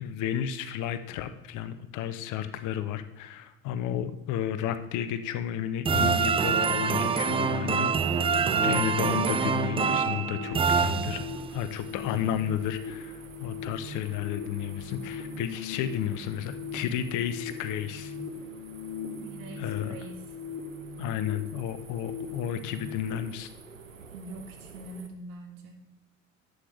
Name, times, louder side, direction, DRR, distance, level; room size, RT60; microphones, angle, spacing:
voice 1, 0.0-18.2 19.6-20.0 21.0-23.5, left 10 dB, 50° left, 11 dB, 0.8 m, -32 dB
sound 1, 5.9-23.2, left 4 dB, 30° left, 2.9 m, -39 dB
sound 2, 5.9-11.6, right 6 dB, 15° right, 0.4 m, -26 dB
sound 3, 11.0-25.1, right 5 dB, 90° right, 0.7 m, -51 dB
voice 2, 19.2-20.2 24.1-25.8, right 2 dB, 60° right, 4 dB, 1.8 m, -44 dB
11.0 x 8.0 x 3.3 m, 1.1 s
figure-of-eight pair, 55°, 38 cm